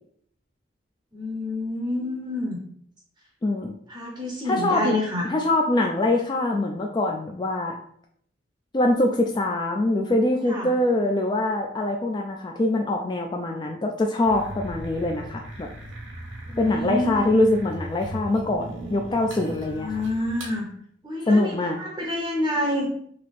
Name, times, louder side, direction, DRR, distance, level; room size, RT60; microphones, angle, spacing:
voice 1, 1.1-2.6 3.9-5.3 10.5-10.7 16.5-17.2 19.7-20.7 21.0-22.9, left 1 dB, 20° right, -1 dB, 0.6 m, -28 dB
voice 2, 3.4-3.7 4.4-4.9 5.3-7.7 8.7-15.7 16.6-20.0 21.3-21.8, left 2 dB, 25° left, 2 dB, 0.3 m, -23 dB
sound 1, 14.3-20.6, right 1 dB, 85° right, 1.2 m, -38 dB
3.3 x 2.8 x 4.0 m, 0.64 s
head